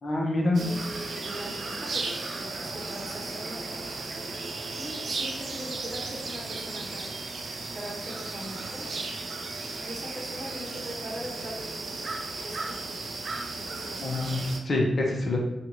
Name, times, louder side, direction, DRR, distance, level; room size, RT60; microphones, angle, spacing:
voice 1, 0.0-0.6 14.0-15.4, left 2 dB, 55° left, -1 dB, 0.7 m, -26 dB
sound 1, 0.5-14.6, right 3 dB, 70° right, 0.4 m, -35 dB
voice 2, 0.6-3.6 4.8-7.1 7.7-9.1 9.8-12.1 12.4-13.1 13.6-14.5, right 1 dB, 40° right, -3 dB, 0.9 m, -41 dB
2.7 x 2.4 x 3.0 m, 0.94 s
cardioid pair, 80°, 0 cm